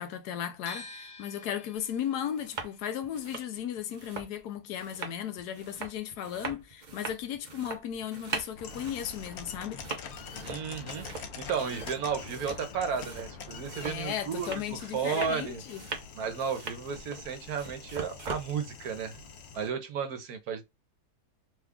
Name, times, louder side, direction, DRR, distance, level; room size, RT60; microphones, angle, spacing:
voice 1, 0.0-9.8 13.8-15.8, left 9 dB, 85° left, 1.2 m, -36 dB
sound 1, 0.7-6.7 7.0-8.3, left 3 dB, 30° left, 0.9 m, -51 dB
sound 2, 1.7-1.8 2.2-2.7 3.0-18.5, right 4 dB, 45° right, 0.6 m, -41 dB
sound 3, 8.5-19.7, left 5 dB, 60° left, 0.7 m, -45 dB
voice 2, 10.5-15.6 16.1-19.2 19.5-20.7, right 6 dB, 75° right, 1.3 m, -33 dB
3.2 x 2.3 x 3.5 m
omnidirectional pair, 1.6 m